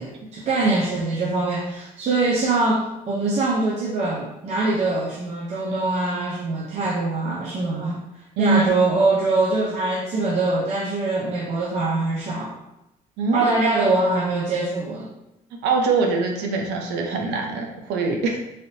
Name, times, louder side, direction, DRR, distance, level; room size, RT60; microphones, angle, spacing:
voice 1, 0.0-8.0 8.4-12.5 13.3-15.1, right 2 dB, 40° right, -4 dB, 0.6 m, -23 dB
voice 2, 0.6-1.0 8.4-8.7 13.2-13.6 15.6-18.4, right 4 dB, 90° right, 1 dB, 0.6 m, -23 dB
3.3 x 2.6 x 2.7 m, 0.89 s
cardioid pair, 110°, 17 cm